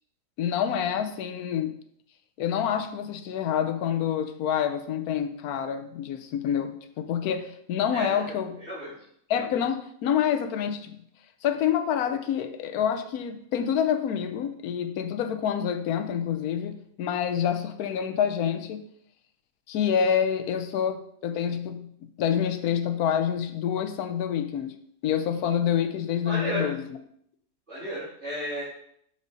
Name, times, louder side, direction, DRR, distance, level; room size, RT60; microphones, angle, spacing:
voice 1, 0.4-1.7 2.4-8.6 9.3-11.0 11.4-18.8 19.7-21.9 22.2-24.8 25.0-26.8, left 8 dB, 70° left, 9 dB, 1.1 m, -27 dB
voice 2, 7.9-8.9 26.2-26.7 27.7-28.6, equal, 45° right, -10 dB, 2.5 m, -33 dB
7.4 x 4.9 x 3.9 m, 0.69 s
omnidirectional pair, 1.7 m